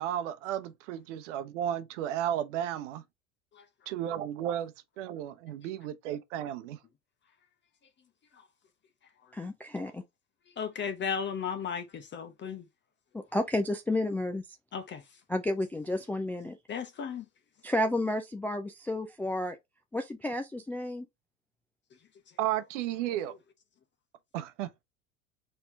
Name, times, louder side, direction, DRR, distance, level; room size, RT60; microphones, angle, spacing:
voice 1, 0.0-3.0 3.9-6.8 22.4-23.3 24.3-24.7, right 11 dB, 65° right, 0.9 m, -33 dB
voice 2, 9.3-10.0 13.1-14.4 15.3-16.6 17.6-19.6 19.9-21.1, left 1 dB, 5° left, 0.3 m, -31 dB
voice 3, 10.6-12.7 14.7-15.0 16.7-17.2, left 7 dB, 30° left, 0.9 m, -35 dB
4.3 x 3.7 x 2.6 m
hypercardioid pair, 85°, 39 cm